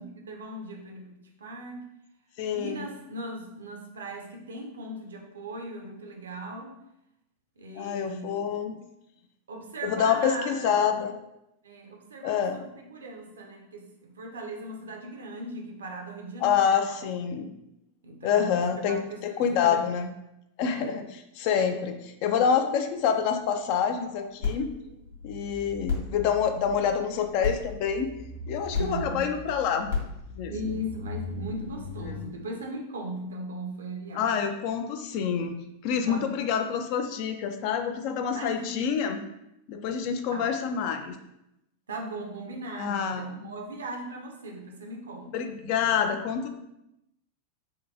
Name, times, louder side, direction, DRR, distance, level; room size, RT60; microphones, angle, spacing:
voice 1, 0.0-1.9 2.5-6.8 7.6-8.6 9.5-10.8 11.6-17.1 18.0-19.9 20.7-20.9 21.6-21.8 24.1-24.3 24.8-25.0 28.8-29.3 30.5-34.4 35.9-36.3 38.3-38.8 40.3-40.5 41.9-45.3, right 1 dB, 65° right, 2 dB, 0.5 m, -38 dB
voice 2, 2.4-2.9 7.8-8.8 9.8-11.1 12.2-12.6 16.4-17.5 18.2-20.1 20.6-21.0 21.4-22.0 22.2-24.7 25.2-28.1 28.5-29.9 30.3-30.5 32.1-32.3 34.1-35.6 35.8-39.2 39.7-41.2 42.7-43.5 45.3-46.5, left 7 dB, 45° left, 7 dB, 0.3 m, -27 dB
sound 1, 24.4-32.2, left 4 dB, 70° left, 1.0 m, -35 dB
3.6 x 2.2 x 2.6 m, 0.84 s
figure-of-eight pair, 90°, 0 cm